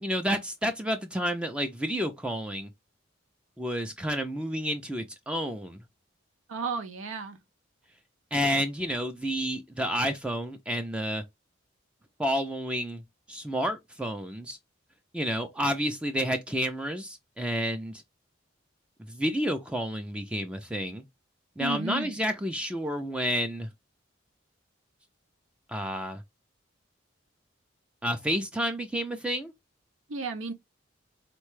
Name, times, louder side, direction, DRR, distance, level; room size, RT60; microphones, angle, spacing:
voice 1, 0.0-2.7 3.6-5.8 8.3-11.2 12.2-13.0 13.3-14.6 15.1-18.0 19.0-21.0 21.6-23.7 25.7-26.2 28.0-29.5, equal, 5° right, 0.3 m, -30 dB
voice 2, 6.5-7.4 21.6-22.2 30.1-30.5, right 4 dB, 85° right, 0.6 m, -33 dB
3.9 x 2.2 x 3.1 m
head